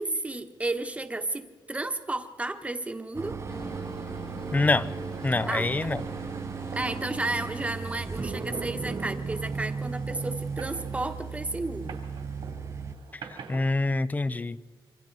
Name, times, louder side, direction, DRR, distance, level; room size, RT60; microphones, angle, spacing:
voice 1, 0.0-3.4 5.5-5.9 6.7-12.0, right 2 dB, 15° right, 7 dB, 1.3 m, -32 dB
sound 1, 3.1-12.9, right 5 dB, 35° right, 0.8 m, -35 dB
sound 2, 3.5-12.5, left 5 dB, 70° left, 1.9 m, -48 dB
sound 3, 3.7-13.6, right 5 dB, 90° right, 3.2 m, -48 dB
voice 2, 4.5-4.9 5.2-6.0 13.3-14.6, left 2 dB, 20° left, 16 dB, 0.6 m, -26 dB
27.0 x 25.0 x 4.1 m, 1.5 s
wide cardioid pair, 130°, 8 cm